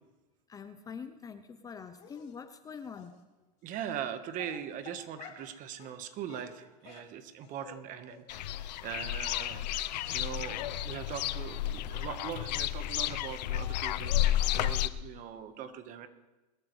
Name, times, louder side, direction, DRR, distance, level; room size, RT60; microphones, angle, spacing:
voice 1, 0.5-3.1, left 6 dB, 15° left, 10 dB, 0.6 m, -44 dB
Dog, 2.0-2.3 2.9-3.1 3.9-4.0 4.3-5.5 5.8-6.0 6.3-7.8 8.1-8.2 8.5-8.6 8.9-9.0 9.4-9.5 9.9-10.0 10.2-10.3, left 7 dB, 30° left, 2.7 m, -51 dB
voice 2, 3.6-9.7 10.1-16.1, right 9 dB, 40° right, 9 dB, 1.3 m, -41 dB
sound 1, 8.3-14.9, left 13 dB, 80° left, 0.7 m, -32 dB
21.5 x 13.5 x 3.2 m, 1.1 s
supercardioid pair, 140°, 21 cm